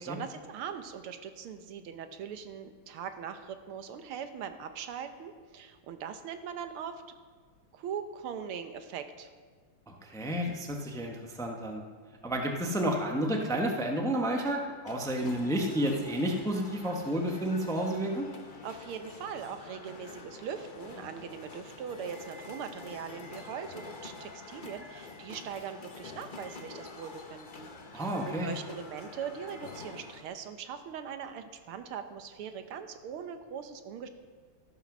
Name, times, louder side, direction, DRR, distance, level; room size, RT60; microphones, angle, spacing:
voice 1, 0.0-7.0 7.7-9.3 18.6-34.1, right 7 dB, 85° right, 8 dB, 1.8 m, -41 dB
voice 2, 9.9-11.8 12.2-18.3 27.9-28.5, right 1 dB, ahead, 1 dB, 0.9 m, -31 dB
sound 1, 14.9-30.2, left 3 dB, 40° left, 0.7 m, -47 dB
13.5 x 10.0 x 6.2 m, 1.5 s
omnidirectional pair, 2.3 m